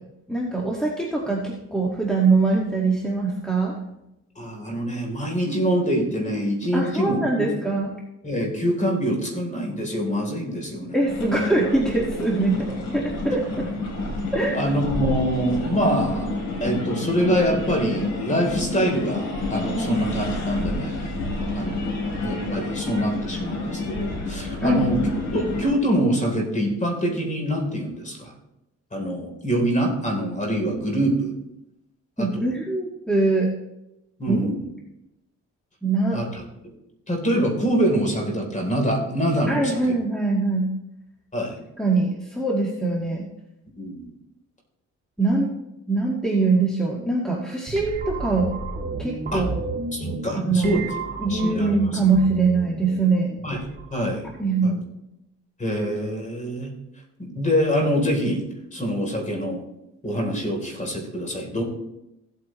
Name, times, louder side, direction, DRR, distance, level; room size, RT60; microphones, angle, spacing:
voice 1, 0.3-3.8 6.7-7.9 10.9-12.7 12.9-13.7 14.3-14.6 19.8-20.0 24.6-24.9 32.2-33.5 34.3-34.4 35.8-36.2 39.5-40.7 41.8-43.3 45.2-45.5 45.9-48.5 49.0-49.5 50.4-50.8 51.2-53.4 54.4-54.8, right 3 dB, ahead, -3 dB, 1.8 m, -22 dB
voice 2, 4.4-7.5 8.2-11.0 12.5-12.6 13.3-13.4 14.5-16.3 16.6-21.0 21.5-25.0 25.3-28.3 28.9-31.3 32.2-32.5 34.2-34.6 36.1-36.3 36.6-36.7 37.1-39.8 41.3-41.6 43.8-44.1 49.3-49.4 49.9-50.8 51.3-51.8 53.4-53.6 53.9-54.3 54.6-54.7 55.6-56.7 57.2-58.4 58.7-59.6 60.0-61.6, equal, 25° left, 1 dB, 3.5 m, -25 dB
sound 1, 11.1-25.7, left 2 dB, 75° left, 3.7 m, -29 dB
sound 2, 47.7-54.6, right 3 dB, 35° right, 2.4 m, -33 dB
16.0 x 8.3 x 3.1 m, 0.88 s
cardioid pair, 90°, 30 cm